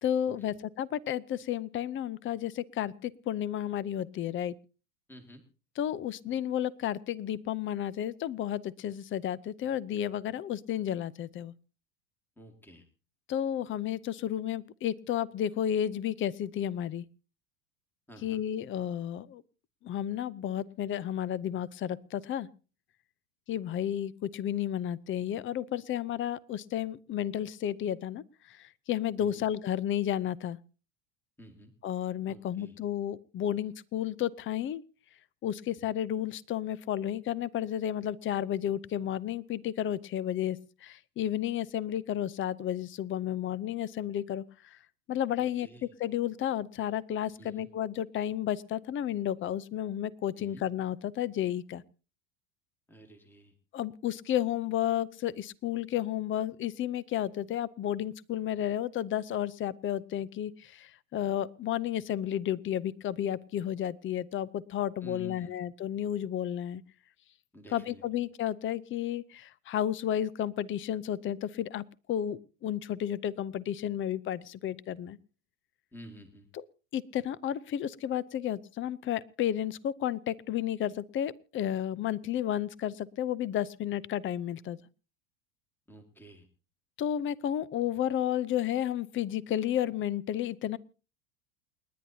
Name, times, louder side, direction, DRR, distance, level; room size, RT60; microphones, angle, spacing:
voice 1, 0.0-4.5 5.8-11.5 13.3-17.0 18.2-19.4 19.8-22.5 23.5-30.6 31.8-34.8 35.4-44.8 45.1-45.7 46.0-51.8 53.7-66.8 67.7-75.2 76.5-76.6 76.9-84.8 87.0-90.8, left 11 dB, 30° left, 21 dB, 0.6 m, -32 dB
voice 2, 5.1-5.5 12.4-12.9 18.1-18.4 29.2-29.4 31.4-31.7 32.3-32.8 45.4-45.9 47.4-47.7 50.4-50.6 52.9-53.5 65.0-65.6 67.5-68.0 75.9-76.5 85.9-86.5, right 1 dB, 5° left, 5 dB, 2.1 m, -51 dB
29.0 x 10.5 x 2.8 m, 0.34 s
supercardioid pair, 105°, 43 cm